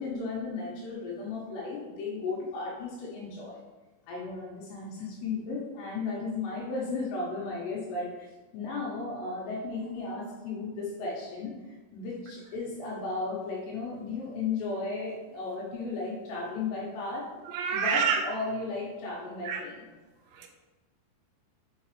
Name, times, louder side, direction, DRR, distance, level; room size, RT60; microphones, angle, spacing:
voice 1, 0.0-3.6 4.1-17.3 17.7-19.8, left 3 dB, 80° left, 3.1 m, -35 dB
voice 2, 17.5-18.3 19.4-19.6 20.3-20.5, right 6 dB, 85° right, 3.0 m, -28 dB
7.6 x 4.8 x 2.9 m
omnidirectional pair, 5.1 m